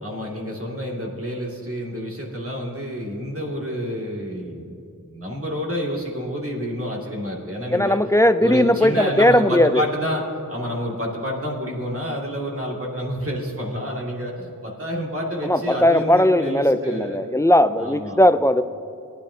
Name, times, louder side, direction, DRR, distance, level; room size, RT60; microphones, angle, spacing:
voice 1, 0.0-4.8 5.1-8.0 8.4-17.2 17.8-18.2, equal, 40° right, -2 dB, 2.2 m, -29 dB
voice 2, 7.7-9.8 15.4-18.6, left 1 dB, 10° left, 11 dB, 0.3 m, -18 dB
18.5 x 10.5 x 2.8 m, 2.6 s
wide cardioid pair, 80°, 35 cm